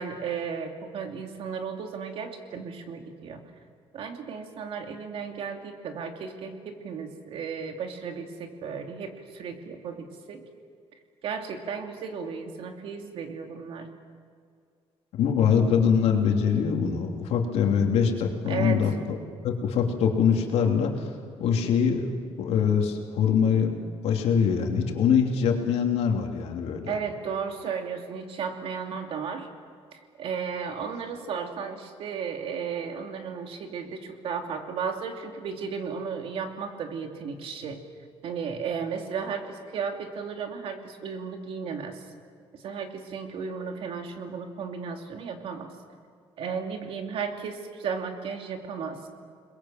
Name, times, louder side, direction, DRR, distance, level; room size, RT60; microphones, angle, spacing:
voice 1, 0.0-3.4 3.9-10.4 11.2-13.9 18.5-18.8 26.9-29.5 29.9-37.8 38.2-42.0 42.6-45.7 46.4-49.0, right 6 dB, 60° right, 4 dB, 2.9 m, -34 dB
voice 2, 15.1-19.2 19.4-21.1 21.4-23.8 24.0-26.9, left 7 dB, 80° left, 2 dB, 3.1 m, -23 dB
30.0 x 21.5 x 7.6 m, 2.2 s
cardioid pair, 155°, 11 cm